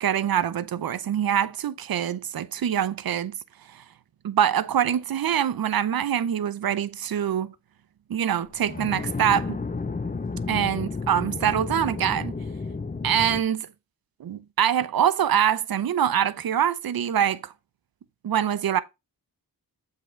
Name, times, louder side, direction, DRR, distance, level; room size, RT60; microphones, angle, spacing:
voice 1, 0.0-3.4 3.7-3.8 4.2-7.5 8.1-9.6 10.5-12.3 13.0-13.7 14.2-17.5 18.2-18.8, right 9 dB, 70° right, 0.7 m, -24 dB
sound 1, 8.5-13.4, left 4 dB, 25° left, 0.7 m, -32 dB
7.5 x 3.8 x 4.5 m
cardioid pair, 60°, 37 cm